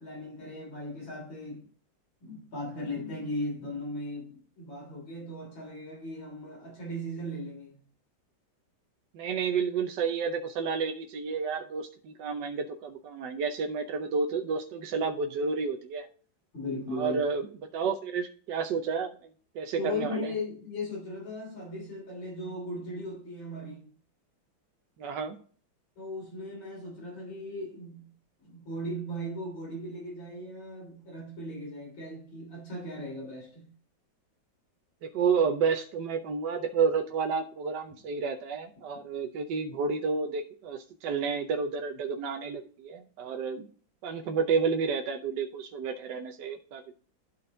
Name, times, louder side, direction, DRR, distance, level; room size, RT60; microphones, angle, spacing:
voice 1, 0.0-1.7 2.2-7.8 16.5-17.2 19.8-23.9 26.0-28.1 28.4-33.7 35.4-35.5, left 1 dB, 75° left, 3.8 m, -37 dB
voice 2, 9.1-16.1 16.9-17.5 17.7-19.1 19.5-20.3 25.0-25.4 35.0-43.7 44.0-46.9, right 5 dB, 65° right, 1.3 m, -30 dB
12.0 x 4.3 x 3.7 m
omnidirectional pair, 2.1 m